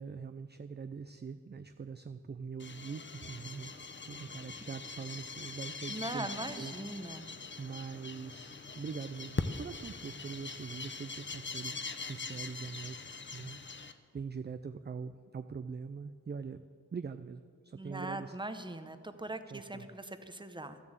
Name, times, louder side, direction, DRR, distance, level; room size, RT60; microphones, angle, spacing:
voice 1, 0.0-6.3 6.6-7.2 7.6-16.6 16.9-18.3 19.5-19.9, right 5 dB, 35° right, 10 dB, 0.4 m, -43 dB
sound 1, 2.6-13.9, left 4 dB, 35° left, 0.6 m, -42 dB
voice 2, 5.9-7.3 17.7-20.8, right 2 dB, 15° right, 9 dB, 0.7 m, -41 dB
12.5 x 7.2 x 7.9 m, 2.1 s
wide cardioid pair, 65°, 32 cm